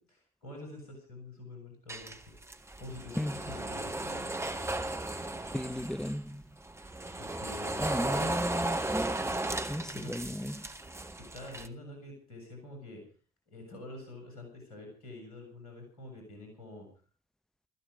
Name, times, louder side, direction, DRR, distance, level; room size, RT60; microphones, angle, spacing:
voice 1, 0.1-2.2 2.8-4.5 7.2-8.3 9.9-10.1 11.2-13.0 13.5-16.9, left 2 dB, 75° left, 7.3 m, -46 dB
sound 1, 1.9-6.2 6.7-11.7, right 2 dB, 15° right, 1.7 m, -35 dB
voice 2, 3.1-3.5 5.5-6.6 7.8-9.3 9.7-10.7, left 1 dB, 5° left, 0.9 m, -36 dB
16.5 x 15.0 x 5.3 m
figure-of-eight pair, 45°, 19 cm